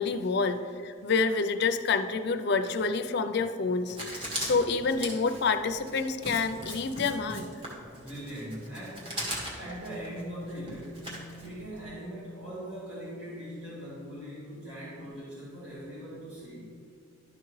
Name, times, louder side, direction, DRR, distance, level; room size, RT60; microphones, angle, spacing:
voice 1, 0.0-7.5, left 4 dB, 55° left, 8 dB, 0.5 m, -28 dB
Writing, 3.9-11.8, equal, 25° right, 1.8 m, -39 dB
voice 2, 8.0-9.3 9.5-16.7, equal, 65° right, -9 dB, 2.0 m, -41 dB
12.0 x 5.8 x 3.2 m, 2.5 s
head